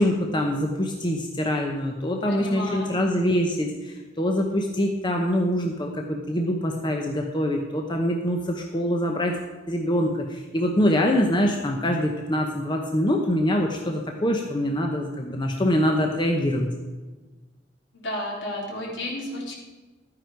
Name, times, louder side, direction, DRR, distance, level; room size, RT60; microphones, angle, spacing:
voice 1, 0.0-9.4 9.7-16.7, equal, 25° left, 2 dB, 0.9 m, -24 dB
voice 2, 2.3-2.9 17.9-19.5, left 1 dB, 70° left, -3 dB, 3.6 m, -32 dB
12.5 x 9.8 x 4.6 m, 1.2 s
head